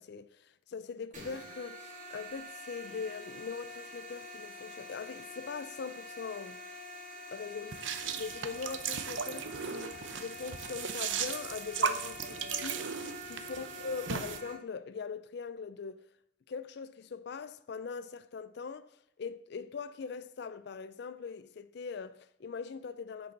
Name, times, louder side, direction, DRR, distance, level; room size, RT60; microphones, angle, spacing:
voice 1, 0.0-6.6 7.3-16.0 16.5-18.9 19.2-23.3, left 5 dB, 55° left, 0.4 m, -41 dB
sound 1, 1.1-14.5, left 1 dB, 40° right, 2.5 m, -47 dB
sound 2, 7.7-14.4, right 6 dB, 70° right, 0.7 m, -36 dB
10.5 x 6.7 x 3.9 m
head